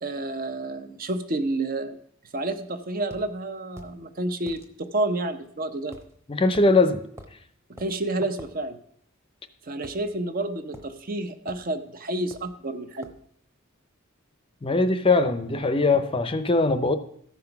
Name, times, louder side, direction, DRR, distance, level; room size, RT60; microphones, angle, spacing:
voice 1, 0.0-2.0 2.3-6.0 7.7-8.8 9.7-13.1, right 2 dB, 45° right, 9 dB, 0.8 m, -30 dB
sound 1, 3.1-3.3 3.8-4.0 4.5-4.7 5.9-6.1 6.5-6.7 7.2-7.4 7.8-7.9 8.4-8.5 9.8-10.4 10.7-10.9 11.5-11.7 12.3-12.6 13.0-13.2, equal, 15° right, 1.0 m, -45 dB
voice 2, 6.3-7.0 14.6-17.0, left 3 dB, 25° left, 11 dB, 0.6 m, -21 dB
13.5 x 5.8 x 5.8 m, 0.66 s
head